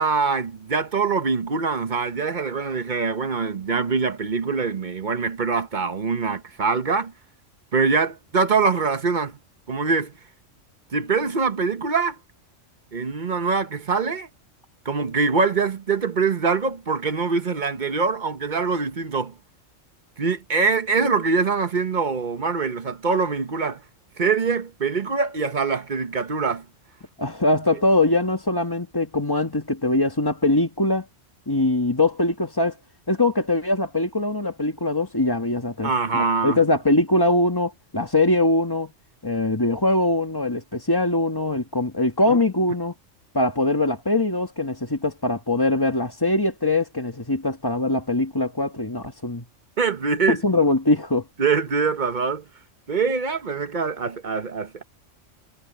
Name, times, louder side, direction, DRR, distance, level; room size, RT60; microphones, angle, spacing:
voice 1, 0.0-7.1 7.7-9.4 9.7-10.1 10.9-12.2 12.9-14.3 14.8-19.4 20.2-23.8 24.2-26.6 27.7-27.8 35.8-36.6 42.3-42.4 49.8-50.4 51.4-52.4 52.9-54.8, right 4 dB, 40° right, 1.1 m, -23 dB
voice 2, 27.2-31.1 31.5-32.8 33.1-38.9 39.2-42.9 43.3-49.4 50.3-51.2, left 2 dB, 20° left, 1.6 m, -22 dB
omnidirectional pair, 1.3 m